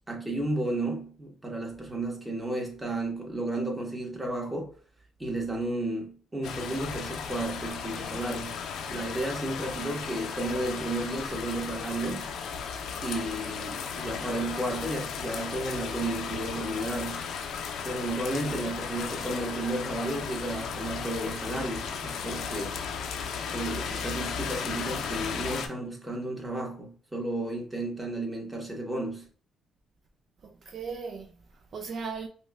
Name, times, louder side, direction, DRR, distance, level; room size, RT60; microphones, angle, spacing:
voice 1, 0.1-4.7 5.2-8.6 8.9-12.3 13.0-17.3 17.8-22.8 23.4-29.3, right 1 dB, 15° right, 1.1 m, -33 dB
sound 1, 6.4-25.7, left 6 dB, 75° left, 0.5 m, -35 dB
voice 2, 30.4-32.3, right 5 dB, 55° right, 0.4 m, -38 dB
5.3 x 2.2 x 2.2 m
cardioid pair, 90°, 0 cm